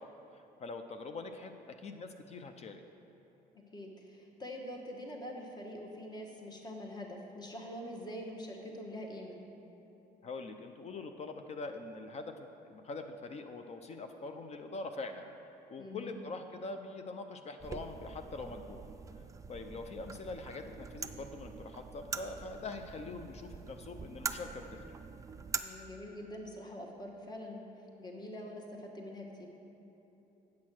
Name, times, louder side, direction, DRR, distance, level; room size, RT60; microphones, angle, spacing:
voice 1, 0.0-1.5 1.8-2.8 10.2-15.3 15.7-18.8 19.1-19.2 19.5-24.9, left 3 dB, 40° left, 6 dB, 0.5 m, -43 dB
voice 2, 3.7-9.4 15.8-16.1 25.6-27.7 28.0-29.5, left 1 dB, 25° left, 0 dB, 1.3 m, -44 dB
sound 1, 17.6-25.6, right 5 dB, 20° right, 0.4 m, -44 dB
8.5 x 6.3 x 6.1 m, 2.9 s
cardioid pair, 110°, 17 cm